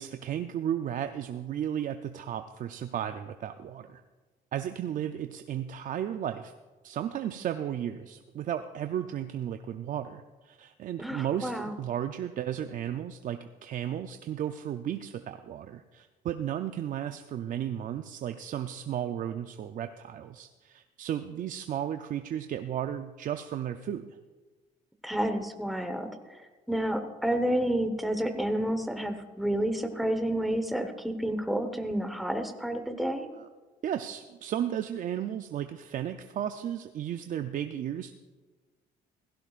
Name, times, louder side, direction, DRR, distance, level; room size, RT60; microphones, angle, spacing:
voice 1, 0.0-4.0 4.5-6.5 6.8-24.2 33.3-33.5 33.8-38.1, right 10 dB, 50° right, 8 dB, 0.5 m, -34 dB
voice 2, 11.0-11.7 25.0-26.4 26.7-33.3, right 1 dB, ahead, 7 dB, 1.2 m, -30 dB
16.5 x 15.5 x 2.5 m, 1.3 s
cardioid pair, 110°, 17 cm